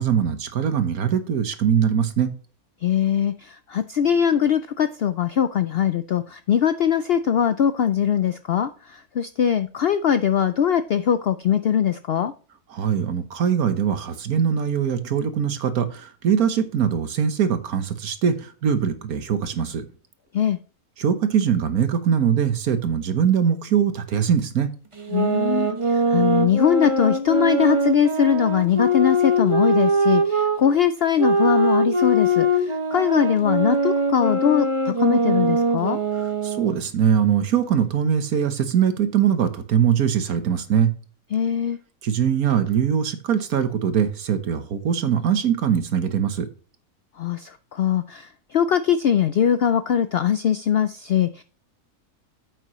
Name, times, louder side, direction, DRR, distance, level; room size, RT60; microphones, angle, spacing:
voice 1, 0.0-2.3 12.7-19.8 21.0-24.7 36.4-40.9 42.0-46.5, right 8 dB, 75° right, 10 dB, 1.6 m, -22 dB
voice 2, 2.8-12.3 20.3-20.6 25.1-36.0 41.3-41.8 47.2-51.4, left 8 dB, 70° left, 12 dB, 0.5 m, -21 dB
sound 1, 25.0-30.6 31.2-36.8, right 1 dB, 25° right, 1.0 m, -22 dB
9.0 x 8.2 x 3.1 m, 0.37 s
omnidirectional pair, 1.6 m